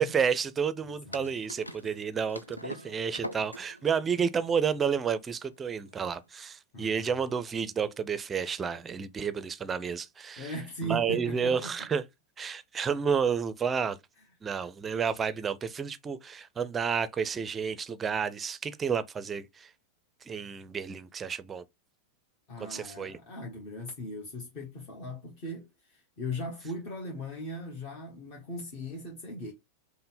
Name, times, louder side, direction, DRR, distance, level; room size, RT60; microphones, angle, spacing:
voice 1, 0.0-10.5 10.8-12.0 12.4-14.0 14.4-19.7 20.3-21.6 22.6-23.2, right 6 dB, 20° right, 0.5 m, -30 dB
voice 2, 0.8-1.3 6.7-7.2 10.4-11.9 22.5-29.5, left 1 dB, 40° left, 1.1 m, -39 dB
sound 1, 1.1-6.2, left 1 dB, 85° left, 0.4 m, -44 dB
5.4 x 2.1 x 3.9 m
figure-of-eight pair, 90°, 0 cm